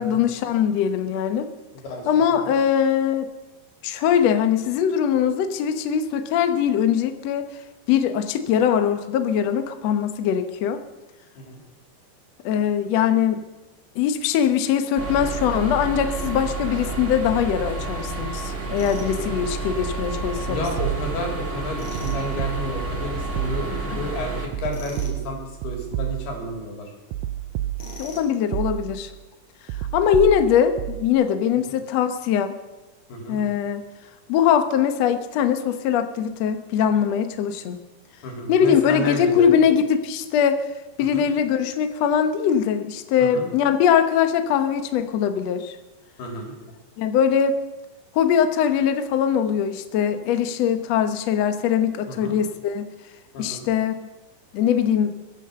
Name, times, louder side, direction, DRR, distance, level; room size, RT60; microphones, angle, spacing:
voice 1, 0.0-1.5 2.1-3.3 3.8-7.5 7.9-10.8 12.4-13.5 13.9-20.6 23.9-24.1 28.0-29.1 29.9-32.5 33.3-33.8 34.3-37.8 38.5-40.6 41.0-45.8 47.0-47.5 48.1-52.9 53.4-54.0 54.5-55.1, left 8 dB, 70° left, 8 dB, 1.6 m, -21 dB
voice 2, 1.8-2.5 11.4-11.6 20.5-26.9 33.1-33.4 38.2-39.5 41.1-41.2 43.2-43.5 46.2-46.5 52.1-52.4 53.3-53.7, left 1 dB, 90° left, 1 dB, 5.4 m, -31 dB
sound 1, 15.0-24.5, right 3 dB, 25° right, 1.7 m, -30 dB
Tools, 18.8-19.1 21.7-22.2 24.7-25.2 27.8-28.4, left 3 dB, 45° left, 5.2 m, -40 dB
sound 2, 20.8-21.4 22.0-23.0 23.4-24.0 24.5-26.6 27.1-28.2 28.5-29.2 29.7-31.1, right 13 dB, 90° right, 2.7 m, -30 dB
22.5 x 9.4 x 6.8 m, 1.1 s
omnidirectional pair, 4.5 m